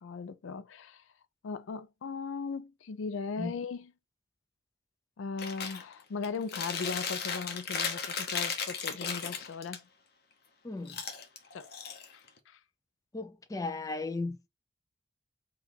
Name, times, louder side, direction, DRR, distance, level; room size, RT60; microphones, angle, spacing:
voice 1, 0.0-1.0 1.4-3.9 5.2-9.9 11.5-11.7 12.1-12.6, left 5 dB, 85° left, 0.4 m, -38 dB
Chewing mastication, 5.4-5.8 6.2-9.8 10.9-12.4, left 6 dB, 55° left, 0.7 m, -35 dB
voice 2, 10.6-11.0 13.1-14.5, left 3 dB, 15° left, 0.4 m, -36 dB
4.5 x 2.4 x 3.6 m
head